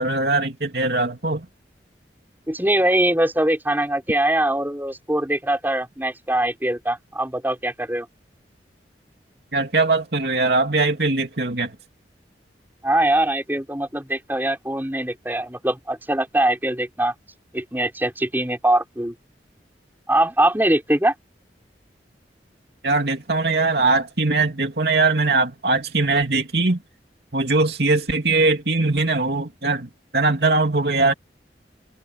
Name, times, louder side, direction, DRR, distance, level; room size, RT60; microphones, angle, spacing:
voice 1, 0.0-1.5 9.5-11.7 22.8-26.8 27.3-31.1, right 3 dB, 65° right, 2.9 m, -21 dB
voice 2, 2.5-8.1 12.8-17.1 17.5-19.1 20.1-21.1, right 1 dB, 10° right, 5.3 m, -22 dB
head